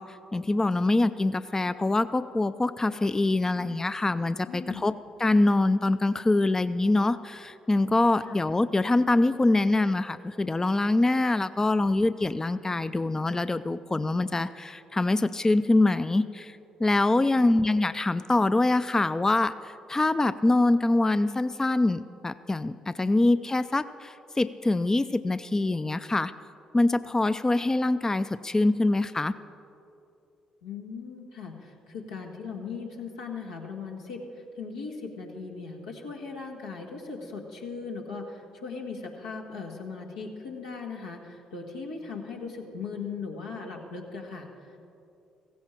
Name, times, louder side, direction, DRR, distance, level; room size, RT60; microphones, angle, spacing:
voice 1, 0.0-4.9 5.2-26.3 26.7-29.3, left 2 dB, 20° left, 13 dB, 0.5 m, -24 dB
voice 2, 4.4-4.8 8.2-8.4 17.4-17.6 30.6-44.8, left 4 dB, 90° left, -2 dB, 1.8 m, -38 dB
16.0 x 15.5 x 4.5 m, 2.7 s
hypercardioid pair, 45°, 3 cm